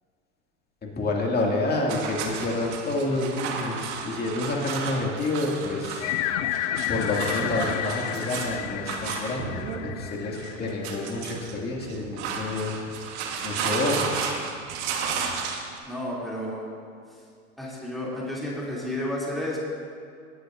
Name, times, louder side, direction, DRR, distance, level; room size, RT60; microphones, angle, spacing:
voice 1, 0.8-6.1 6.9-12.8 13.4-14.2, left 2 dB, 25° left, -1 dB, 2.3 m, -28 dB
sound 1, 1.9-15.8, right 5 dB, 60° right, 1.5 m, -33 dB
sound 2, 6.0-11.2, left 12 dB, 70° left, 0.6 m, -31 dB
voice 2, 15.8-16.6 17.6-19.6, left 1 dB, ahead, -6 dB, 2.9 m, -31 dB
19.0 x 8.6 x 2.6 m, 2.3 s
hypercardioid pair, 100°, 38 cm